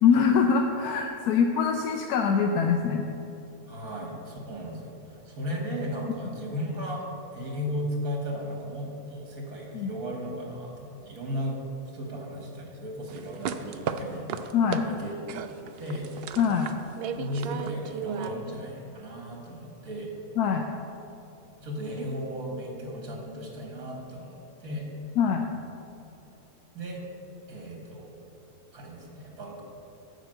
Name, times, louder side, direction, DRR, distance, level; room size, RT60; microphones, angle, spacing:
voice 1, 0.0-3.0 9.7-9.9 14.5-14.8 16.4-16.7 20.4-20.7 25.2-25.5, left 6 dB, 85° left, 4 dB, 1.2 m, -23 dB
voice 2, 3.7-11.6 11.8-14.3 14.8-15.5 15.8-16.1 17.1-20.1 21.6-24.9 26.7-27.0 27.5-28.1 28.7-29.6, equal, 70° right, 0 dB, 2.1 m, -35 dB
sound 1, 13.1-14.9 15.3-18.3, right 7 dB, 85° right, 0.5 m, -35 dB
11.5 x 5.1 x 7.8 m, 2.8 s
omnidirectional pair, 1.6 m